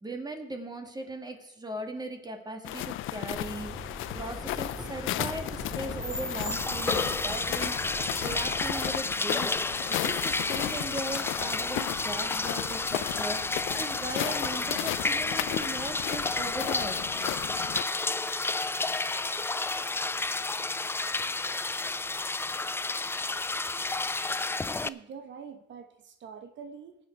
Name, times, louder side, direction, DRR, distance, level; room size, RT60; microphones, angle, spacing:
voice 1, 0.0-3.7 4.1-8.0 8.2-9.5 9.9-17.0, right 1 dB, 20° right, 4 dB, 1.9 m, -38 dB
sound 1, 2.6-17.8, left 15 dB, 85° left, 0.5 m, -35 dB
sound 2, 3.3-8.9, right 1 dB, 5° right, 1.9 m, -40 dB
sound 3, 6.5-24.9, left 3 dB, 10° left, 0.4 m, -31 dB
voice 2, 24.8-27.0, right 6 dB, 70° right, 7 dB, 1.2 m, -45 dB
18.5 x 7.1 x 4.5 m, 0.80 s
cardioid pair, 90°, 20 cm